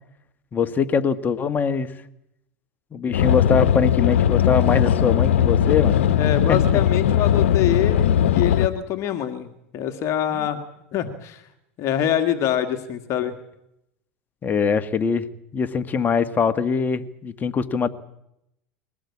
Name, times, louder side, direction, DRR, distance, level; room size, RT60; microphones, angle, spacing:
voice 1, 0.5-1.9 2.9-6.0 10.3-10.4 14.4-15.2 15.5-17.9, left 6 dB, 30° left, 10 dB, 1.5 m, -22 dB
sound 1, 3.1-8.7, left 10 dB, 90° left, 0.9 m, -19 dB
voice 2, 6.1-10.6 10.9-11.4 11.8-13.3, left 10 dB, 50° left, 7 dB, 1.9 m, -25 dB
22.5 x 18.5 x 8.5 m, 0.81 s
supercardioid pair, 110°, 7 cm